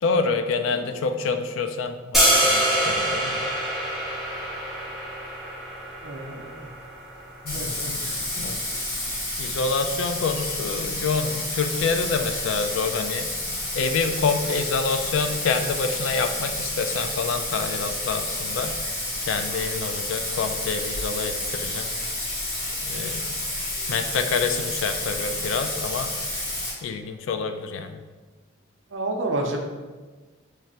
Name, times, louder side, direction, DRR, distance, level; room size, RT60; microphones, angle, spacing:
voice 1, 0.0-3.4 7.4-8.0 8.4-8.6 9.4-18.8 19.3-21.9 22.8-23.3 23.9-26.2 26.8-28.0, left 4 dB, 70° left, 7 dB, 0.3 m, -27 dB
sound 1, 2.1-8.2, right 1 dB, ahead, 0.6 m, -25 dB
voice 2, 6.0-6.7 7.5-7.9 28.9-29.6, right 2 dB, 65° right, 2 dB, 0.5 m, -30 dB
Bathtub (filling or washing), 7.5-26.7, left 1 dB, 45° left, 1.1 m, -30 dB
3.2 x 2.4 x 4.1 m, 1.3 s
head